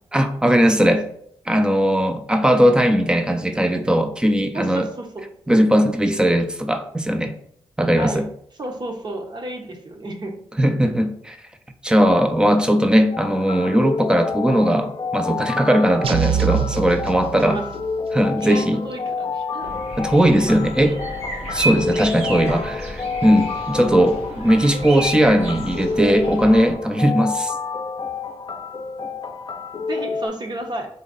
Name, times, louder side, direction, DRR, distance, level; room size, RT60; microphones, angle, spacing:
voice 1, 0.1-1.1 1.5-4.9 5.5-7.4 7.8-8.3 10.6-11.4 11.8-17.6 18.1-18.8 20.0-21.0 21.5-27.5, equal, 10° right, 7 dB, 0.5 m, -18 dB
voice 2, 4.5-5.2 7.9-8.3 8.6-10.3 17.3-17.6 18.4-19.7 21.9-22.1 29.9-30.9, right 1 dB, 40° right, 3 dB, 1.0 m, -31 dB
sound 1, 13.1-30.3, left 5 dB, 45° left, 0.6 m, -29 dB
sound 2, 16.0-17.9, right 7 dB, 60° right, 0.4 m, -24 dB
sound 3, 19.6-26.7, right 1 dB, 80° right, 1.4 m, -32 dB
4.0 x 3.2 x 3.9 m, 0.65 s
cardioid pair, 85°, 11 cm